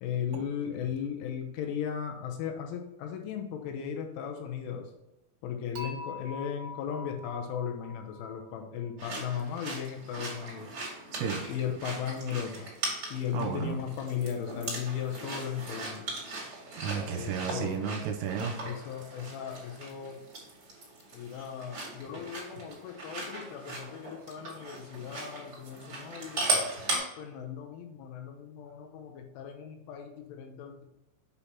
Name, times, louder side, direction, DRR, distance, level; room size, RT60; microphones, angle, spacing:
voice 1, 0.0-4.9 5.4-10.7 11.5-12.7 13.1-16.1 17.1-17.8 18.6-20.2 21.1-26.5 27.2-30.8, left 8 dB, 80° left, 3 dB, 3.1 m, -36 dB
Dishes pots and pans / Chink clink, 5.8-8.9, left 3 dB, 60° right, 2.9 m, -44 dB
sound 1, 9.0-27.0, right 3 dB, 40° right, 2.2 m, -38 dB
voice 2, 13.3-13.8 16.8-18.6, right 6 dB, 85° right, 3 dB, 3.2 m, -33 dB
8.2 x 5.5 x 2.9 m, 0.95 s
omnidirectional pair, 6.0 m